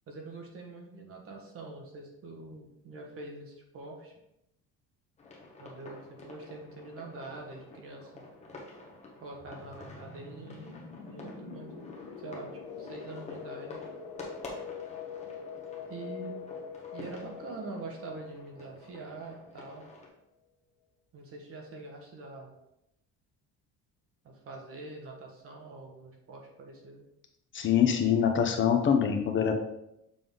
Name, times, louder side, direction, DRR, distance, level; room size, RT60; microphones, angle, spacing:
voice 1, 0.1-4.2 5.6-8.2 9.2-11.8 12.2-13.8 15.9-16.3 16.9-19.9 21.1-22.5 24.2-27.0, right 3 dB, 45° right, 1 dB, 1.4 m, -44 dB
sound 1, 5.2-20.1, left 2 dB, 20° left, 1.3 m, -49 dB
sound 2, 9.3-19.8, left 6 dB, 75° left, 1.2 m, -44 dB
voice 2, 27.5-29.6, left 8 dB, 40° left, 5 dB, 0.6 m, -24 dB
6.9 x 3.8 x 3.8 m, 0.84 s
cardioid pair, 145°, 31 cm